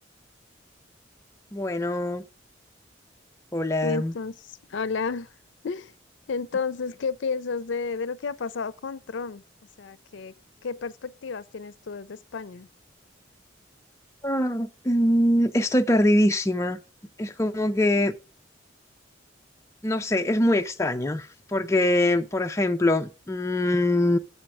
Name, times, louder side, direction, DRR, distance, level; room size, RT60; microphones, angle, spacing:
voice 1, 1.5-2.3 3.5-4.1 14.2-16.8 17.2-18.1 19.8-24.2, left 1 dB, 15° left, 0.4 m, -23 dB
voice 2, 3.8-5.4 5.6-5.9 6.3-9.4 9.8-10.3 10.6-12.7, left 5 dB, 70° left, 0.5 m, -32 dB
7.6 x 4.4 x 6.0 m
head